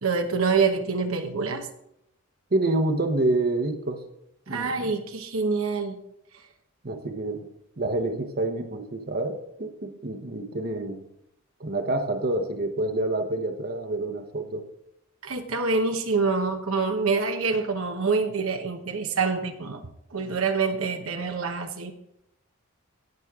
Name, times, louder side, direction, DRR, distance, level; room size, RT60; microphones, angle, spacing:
voice 1, 0.0-1.7 4.5-6.0 15.2-19.8 20.1-21.9, right 4 dB, 70° right, 5 dB, 1.0 m, -26 dB
voice 2, 2.5-4.0 4.5-5.0 6.8-7.5 7.8-11.0 11.6-14.6, right 2 dB, 45° right, 6 dB, 1.0 m, -27 dB
17.5 x 6.3 x 3.6 m, 0.78 s
head